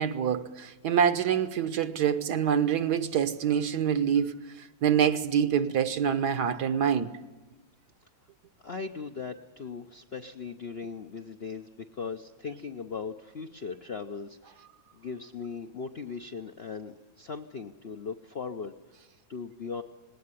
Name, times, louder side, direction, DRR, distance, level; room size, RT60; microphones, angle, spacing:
voice 1, 0.0-7.1, right 8 dB, 60° right, 1.4 m, -26 dB
voice 2, 8.6-14.7 14.9-19.0 19.3-19.8, left 5 dB, 55° left, 0.7 m, -39 dB
19.5 x 18.0 x 9.8 m
omnidirectional pair, 2.1 m